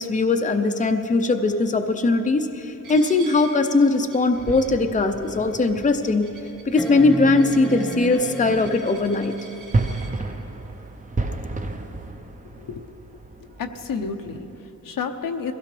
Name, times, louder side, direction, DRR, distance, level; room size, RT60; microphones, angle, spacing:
voice 1, 0.0-6.3 6.7-9.4, left 3 dB, 25° left, 6 dB, 0.6 m, -20 dB
Coin (dropping), 2.8-10.1, right 4 dB, 75° right, 2.2 m, -46 dB
sound 1, 4.3-14.6, right 3 dB, 25° right, 0.8 m, -33 dB
sound 2, 6.8-9.2 11.0-11.1, right 1 dB, ahead, 1.1 m, -32 dB
voice 2, 12.4-13.0 13.4-15.5, left 5 dB, 80° left, 6 dB, 0.9 m, -31 dB
22.0 x 16.0 x 3.3 m, 2.9 s
wide cardioid pair, 120°, 33 cm